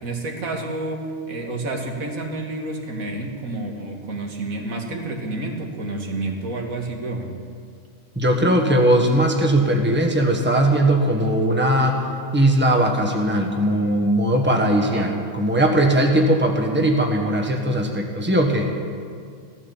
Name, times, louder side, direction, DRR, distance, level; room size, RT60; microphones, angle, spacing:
voice 1, 0.0-7.3 14.8-15.1, right 2 dB, 80° right, 1 dB, 2.3 m, -29 dB
voice 2, 8.1-12.0 12.3-18.7, right 1 dB, 10° right, 2 dB, 1.5 m, -19 dB
16.0 x 12.5 x 7.3 m, 2.2 s
omnidirectional pair, 1.4 m